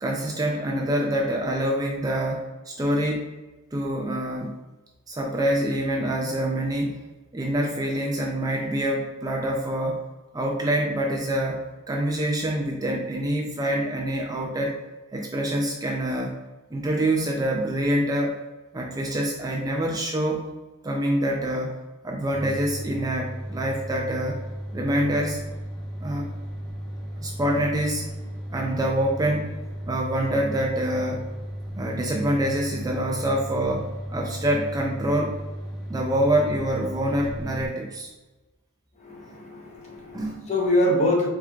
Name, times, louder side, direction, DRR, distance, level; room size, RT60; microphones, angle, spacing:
voice 1, 0.0-3.3 3.7-4.5 5.1-7.0 7.3-10.0 10.3-11.6 11.9-14.8 15.1-16.3 16.7-18.3 18.7-20.4 20.8-21.7 22.0-24.4 24.7-25.4 26.0-26.3 27.2-28.1 28.5-31.2 31.8-35.4 35.9-38.1 40.1-40.4, right 1 dB, 15° right, -1 dB, 0.4 m, -26 dB
sound 1, 22.3-37.7, equal, ahead, 1.2 m, -35 dB
voice 2, 39.0-41.3, left 1 dB, 30° left, -1 dB, 0.9 m, -24 dB
4.3 x 3.6 x 2.4 m, 1.1 s
head